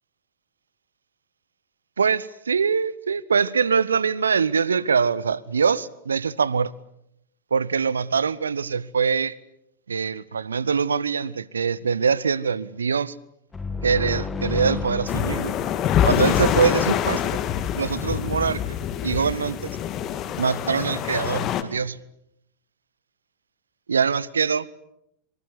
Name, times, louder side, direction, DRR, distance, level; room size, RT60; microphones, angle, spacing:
voice 1, 2.0-6.7 7.5-9.3 9.9-13.1 13.8-15.5 16.0-17.4 17.8-18.8 19.0-19.7 20.4-22.0 23.9-24.7, right 6 dB, 70° right, 0.9 m, -23 dB
sound 1, 13.5-17.3, left 4 dB, 15° left, 1.8 m, -33 dB
sound 2, 15.1-21.6, left 9 dB, 35° left, 2.2 m, -25 dB
25.0 x 24.5 x 8.3 m
figure-of-eight pair, 90°, 0 cm